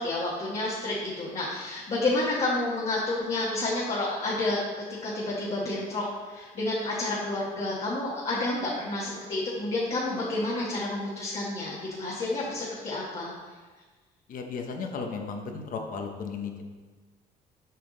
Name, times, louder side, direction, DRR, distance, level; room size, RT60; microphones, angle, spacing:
voice 1, 0.0-4.6 5.0-13.5, left 2 dB, 35° left, -6 dB, 1.4 m, -30 dB
voice 2, 14.3-16.6, left 5 dB, 55° left, 3 dB, 1.0 m, -35 dB
6.8 x 5.8 x 3.9 m, 1.4 s
cardioid pair, 110°, 17 cm